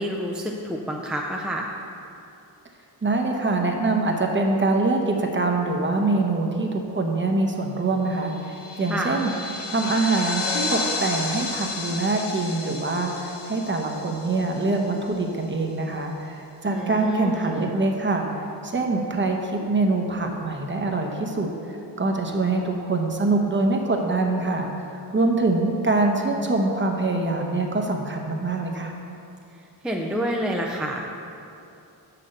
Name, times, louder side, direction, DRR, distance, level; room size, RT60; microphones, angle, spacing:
voice 1, 0.0-1.7 8.9-9.3 16.6-17.7 29.8-31.1, equal, ahead, -1 dB, 0.5 m, -28 dB
voice 2, 3.0-9.3 9.7-18.3 18.6-28.9, right 2 dB, 25° right, 2 dB, 0.9 m, -24 dB
sound 1, 8.2-15.1, left 3 dB, 75° left, 1.0 m, -32 dB
6.7 x 5.9 x 6.4 m, 2.7 s
wide cardioid pair, 120°, 42 cm